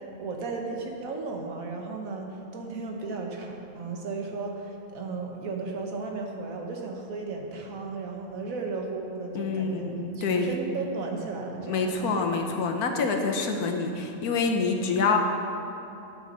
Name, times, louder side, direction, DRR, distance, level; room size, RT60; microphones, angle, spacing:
voice 1, 0.0-2.3 2.5-9.9 10.1-12.1, right 3 dB, 65° right, 1 dB, 1.5 m, -35 dB
voice 2, 9.3-10.6 11.7-15.2, left 4 dB, 85° left, 3 dB, 1.4 m, -26 dB
9.1 x 6.2 x 6.8 m, 2.8 s
omnidirectional pair, 1.6 m